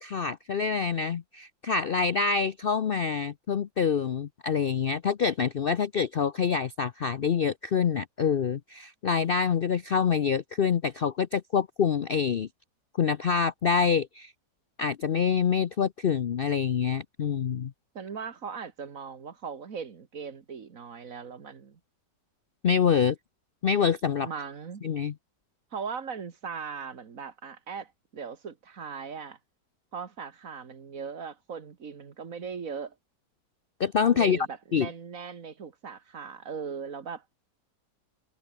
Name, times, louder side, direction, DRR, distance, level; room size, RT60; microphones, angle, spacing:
voice 1, 0.0-12.5 13.0-14.3 14.8-17.7 22.6-23.2 23.6-24.3 24.8-25.1 33.8-34.5 34.7-34.9, left 6 dB, 90° left, 0.4 m, -26 dB
voice 2, 18.0-21.8 24.2-24.8 25.7-29.4 29.9-33.0 34.1-37.3, right 6 dB, 50° right, 1.9 m, -39 dB
omnidirectional pair, 1.9 m